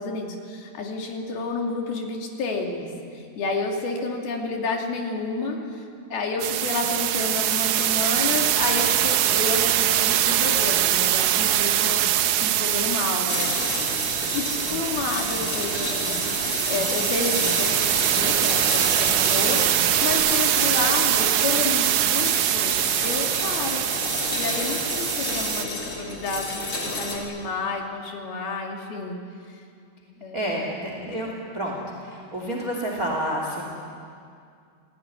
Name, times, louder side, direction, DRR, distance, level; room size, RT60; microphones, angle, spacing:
voice 1, 0.0-5.8 6.1-12.1 12.4-13.9 14.3-22.8 23.0-23.9 24.3-29.2 30.2-30.5, left 3 dB, 70° left, 1 dB, 4.5 m, -30 dB
sound 1, 6.4-25.6, right 11 dB, 85° right, 1.6 m, -23 dB
sound 2, 13.3-27.2, left 2 dB, 35° left, 4.3 m, -31 dB
sound 3, 14.6-15.1 15.3-15.7 16.0-16.4 16.7-17.1 17.4-20.1, right 3 dB, 55° right, 5.7 m, -40 dB
voice 2, 30.3-31.8 32.0-33.6, equal, 25° right, 0 dB, 2.9 m, -29 dB
28.0 x 17.5 x 10.0 m, 2.3 s
omnidirectional pair, 4.6 m